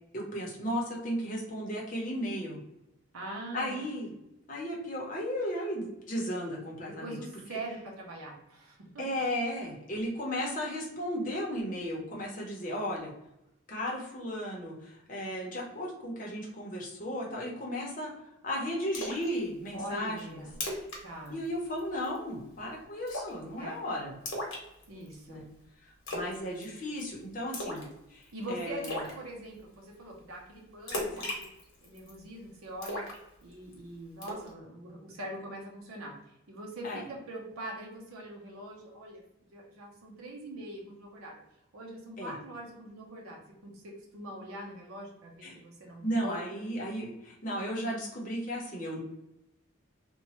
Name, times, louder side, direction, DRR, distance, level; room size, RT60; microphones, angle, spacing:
voice 1, 0.1-2.6 3.5-4.1 4.5-7.2 7.5-7.6 9.0-13.1 13.7-18.1 18.4-20.4 21.3-24.2 25.3-25.5 25.8-29.0 36.8-37.0 42.2-42.3 45.4-45.6 46.0-49.0, equal, 40° left, -2 dB, 0.7 m, -35 dB
voice 2, 3.1-3.8 7.0-9.0 19.7-20.6 21.0-21.4 23.6-23.7 24.9-25.4 28.3-31.5 31.8-33.0 33.4-36.1 36.5-39.2 39.5-41.4 41.7-46.4, right 1 dB, 85° right, -1 dB, 0.6 m, -42 dB
Splash splatter, 18.9-19.3 19.7-19.8 20.2-20.3 20.5-21.0 21.3-21.5 21.8-22.2 23.1-23.4 24.3-25.1 26.1-26.4 26.6-27.0 27.5-27.9 28.2-28.3 28.8-29.1 30.9-32.1 32.8-33.7 34.2-34.5, left 1 dB, 65° left, 0.9 m, -36 dB
2.9 x 2.2 x 2.9 m, 0.85 s
head